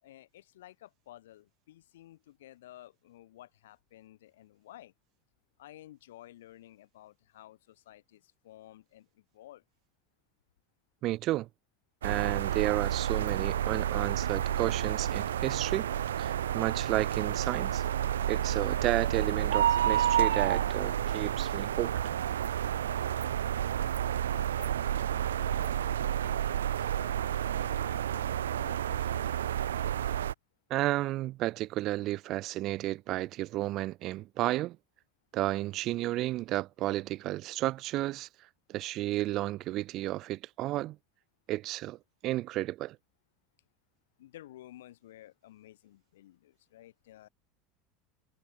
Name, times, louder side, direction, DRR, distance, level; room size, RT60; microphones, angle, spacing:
voice 1, 0.0-4.9 5.6-9.6 24.3-29.3 44.2-47.3, left 14 dB, 75° left, 6.8 m, -53 dB
voice 2, 11.0-11.5 12.0-15.9 16.2-17.8 18.3-22.0 30.7-34.8 35.3-38.3 38.7-41.0 41.5-42.0 42.2-43.0, right 16 dB, 50° right, 1.8 m, -32 dB
sound 1, 12.0-30.3, right 10 dB, 80° right, 2.2 m, -30 dB
hypercardioid pair, 80°, 0 cm